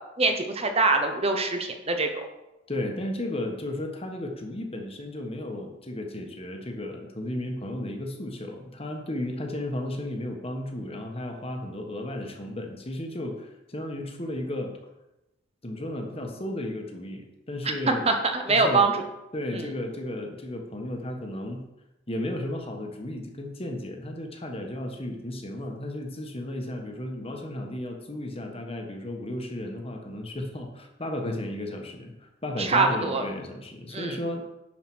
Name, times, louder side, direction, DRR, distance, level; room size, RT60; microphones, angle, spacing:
voice 1, 0.2-2.2 17.9-19.0 19.5-19.7 32.6-33.2 33.9-34.2, right 3 dB, 30° right, 5 dB, 1.0 m, -24 dB
voice 2, 2.7-14.7 15.6-18.1 18.5-18.8 19.3-21.6 22.1-34.5, left 1 dB, 30° left, 3 dB, 1.4 m, -34 dB
11.0 x 4.9 x 6.2 m, 0.96 s
head